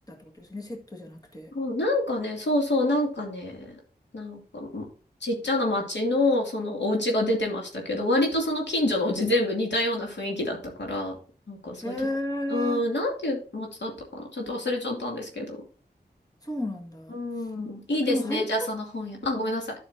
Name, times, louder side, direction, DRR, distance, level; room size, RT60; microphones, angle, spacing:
voice 1, 0.1-1.5 11.8-12.8 16.4-17.5 18.0-18.7, left 1 dB, 20° left, 1.8 m, -33 dB
voice 2, 1.5-3.7 4.1-4.8 5.2-11.2 11.5-11.9 12.5-15.6 17.1-19.7, left 1 dB, 85° left, 2.6 m, -27 dB
12.0 x 6.2 x 2.7 m
wide cardioid pair, 80°, 18 cm